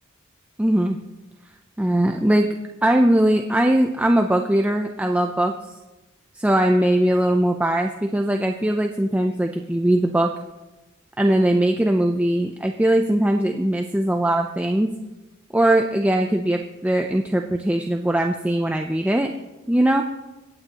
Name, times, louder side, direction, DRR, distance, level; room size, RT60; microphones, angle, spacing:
voice 1, 0.6-1.0 1.8-2.5 2.8-5.8 6.3-10.3 11.2-14.9 15.5-19.3 19.7-20.0, right 1 dB, 5° right, 3 dB, 0.4 m, -20 dB
25.5 x 9.0 x 2.9 m, 1.1 s
head